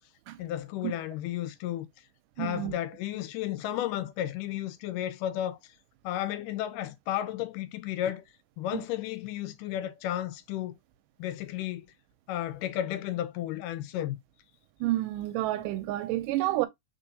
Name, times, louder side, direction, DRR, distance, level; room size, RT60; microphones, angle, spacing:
voice 1, 0.4-1.9 2.4-5.6 6.0-8.2 8.6-10.7 11.2-11.9 12.3-14.2, left 12 dB, 80° left, 2.1 m, -33 dB
voice 2, 2.4-2.8 8.7-8.8 14.8-16.7, right 16 dB, 80° right, 2.0 m, -29 dB
4.6 x 4.0 x 2.7 m
omnidirectional pair, 4.0 m